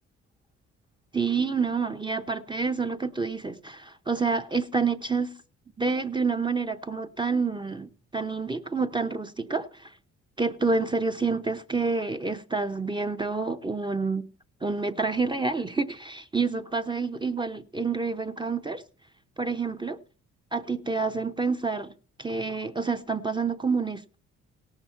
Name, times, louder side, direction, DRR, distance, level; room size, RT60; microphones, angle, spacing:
voice 1, 1.1-5.4 5.8-9.9 10.4-14.3 14.6-18.8 19.4-20.0 20.5-21.9 22.2-24.2, right 4 dB, 15° right, 0.7 m, -28 dB
17.5 x 6.0 x 5.6 m
cardioid pair, 90°, 30 cm